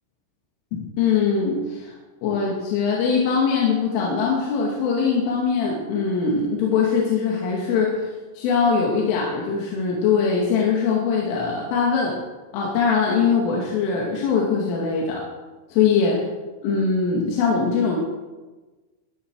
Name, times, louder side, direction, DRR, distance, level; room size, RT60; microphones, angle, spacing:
voice 1, 0.7-1.9 2.2-12.2 12.5-15.2 15.8-16.2 16.6-18.0, left 5 dB, 85° left, -3 dB, 4.8 m, -22 dB
18.5 x 13.5 x 4.8 m, 1.2 s
omnidirectional pair, 5.6 m